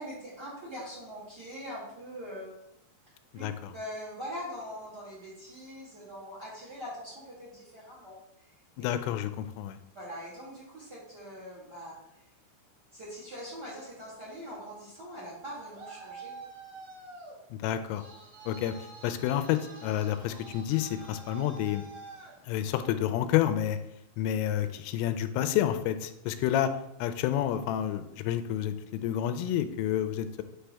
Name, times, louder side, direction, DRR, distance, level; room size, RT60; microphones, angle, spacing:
voice 1, 0.0-2.5 3.3-3.5 3.7-8.2 8.8-8.9 9.9-11.9 12.9-16.4, equal, 30° right, -7 dB, 2.2 m, -42 dB
voice 2, 3.3-3.7 8.8-9.8 17.5-18.0 18.5-21.8 22.4-23.8 24.2-26.7 27.0-30.4, left 11 dB, 85° left, 10 dB, 3.1 m, -29 dB
Traffic noise roadway noise, 15.4-23.1, right 4 dB, 60° right, 1.7 m, -48 dB
8.9 x 4.9 x 3.4 m, 0.81 s
omnidirectional pair, 5.7 m